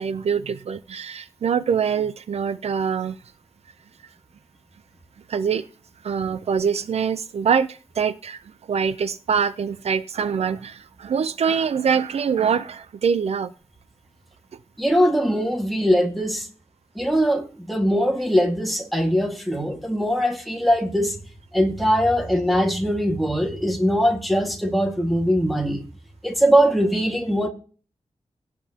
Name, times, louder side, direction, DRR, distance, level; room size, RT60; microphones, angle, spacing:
voice 1, 0.0-3.2 5.3-5.7 6.0-8.4 8.7-13.5, right 7 dB, 70° right, 0.5 m, -24 dB
voice 2, 14.8-16.5 17.0-21.2 21.5-25.8 26.2-27.5, equal, ahead, 1.8 m, -21 dB
17.5 x 8.5 x 2.9 m
wide cardioid pair, 175°, 11 cm